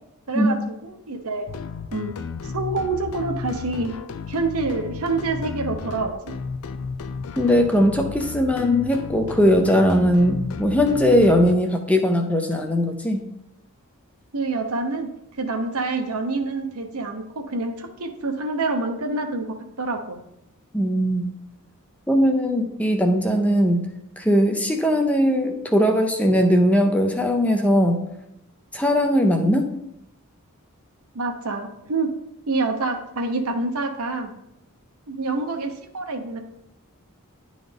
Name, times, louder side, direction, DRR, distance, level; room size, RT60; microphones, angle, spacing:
voice 1, 0.3-1.5 1.9-2.2 2.5-3.9 4.3-6.1 14.3-15.1 15.4-19.5 19.8-20.2 31.1-32.1 32.5-34.3 35.1-36.4, right 3 dB, 80° right, 4 dB, 0.9 m, -27 dB
sound 1, 1.5-11.5, left 5 dB, 75° left, 0.4 m, -33 dB
voice 2, 7.4-13.2 20.7-21.3 22.1-23.9 24.2-28.0 28.7-29.7, equal, 5° left, 3 dB, 0.5 m, -19 dB
10.5 x 3.9 x 3.5 m, 0.83 s
head